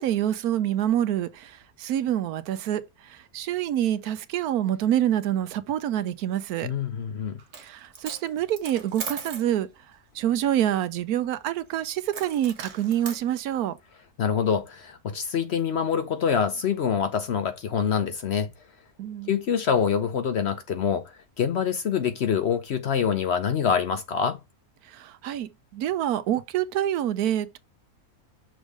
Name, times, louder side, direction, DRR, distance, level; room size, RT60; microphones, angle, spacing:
voice 1, 0.0-6.7 7.5-9.7 10.1-13.8 19.0-19.4 24.8-27.6, right 11 dB, 80° right, 1.2 m, -27 dB
voice 2, 6.6-7.4 14.2-18.5 19.3-24.4, left 7 dB, 60° left, 0.7 m, -25 dB
Coin (dropping), 7.4-7.7 7.9-9.5 12.1-13.2, right 5 dB, 50° right, 1.4 m, -38 dB
6.3 x 3.4 x 4.7 m
omnidirectional pair, 1.6 m